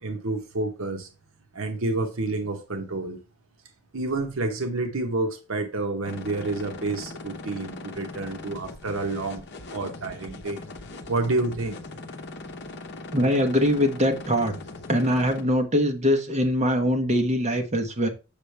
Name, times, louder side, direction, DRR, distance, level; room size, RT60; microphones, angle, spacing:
voice 1, 0.0-1.1 1.5-3.2 3.9-9.4 9.7-10.6 11.1-11.8, right 2 dB, 70° right, 1.0 m, -29 dB
sound 1, 6.0-15.4, left 2 dB, 50° left, 0.8 m, -40 dB
voice 2, 13.1-14.5 14.9-18.1, equal, 30° right, 1.0 m, -22 dB
7.0 x 5.5 x 3.3 m
head